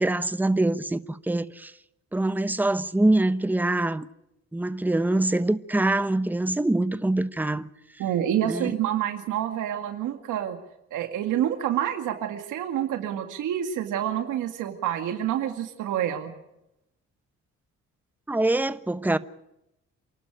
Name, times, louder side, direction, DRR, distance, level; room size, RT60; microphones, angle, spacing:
voice 1, 0.0-1.7 2.1-4.1 4.5-7.7 8.5-8.7 18.3-19.2, right 2 dB, 5° right, 0.9 m, -24 dB
voice 2, 8.0-10.6 10.9-16.3, right 11 dB, 85° right, 2.2 m, -28 dB
27.5 x 12.0 x 9.9 m
cardioid pair, 90°, 30 cm